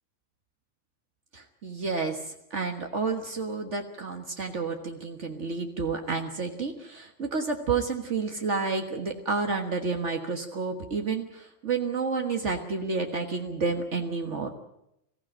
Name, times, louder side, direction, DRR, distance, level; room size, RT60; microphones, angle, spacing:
voice 1, 1.3-2.2 2.5-14.5, right 4 dB, 85° right, 4 dB, 0.6 m, -30 dB
22.0 x 15.5 x 8.9 m, 0.82 s
omnidirectional pair, 3.7 m